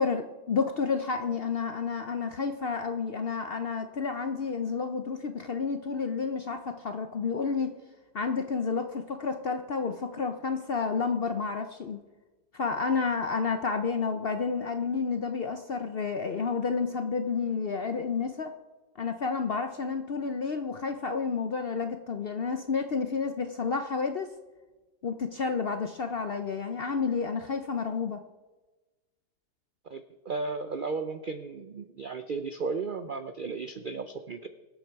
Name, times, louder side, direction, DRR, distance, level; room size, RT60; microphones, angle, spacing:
voice 1, 0.0-7.8 8.1-12.0 12.5-18.5 19.0-24.3 25.0-28.2, left 5 dB, 60° left, 7 dB, 0.6 m, -30 dB
voice 2, 29.9-34.5, right 4 dB, 90° right, 9 dB, 0.4 m, -34 dB
23.5 x 8.0 x 4.6 m, 1.2 s
omnidirectional pair, 1.7 m